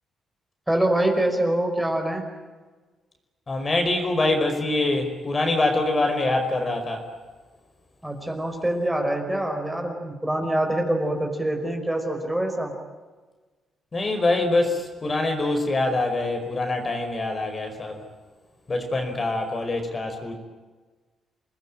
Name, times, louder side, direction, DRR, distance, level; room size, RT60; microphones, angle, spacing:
voice 1, 0.7-2.3 8.0-12.7, right 1 dB, 5° right, 3 dB, 5.2 m, -25 dB
voice 2, 3.5-7.0 13.9-18.0 18.7-20.3, left 2 dB, 30° left, 5 dB, 5.1 m, -24 dB
28.0 x 20.0 x 8.9 m, 1.3 s
cardioid pair, 110°, 0 cm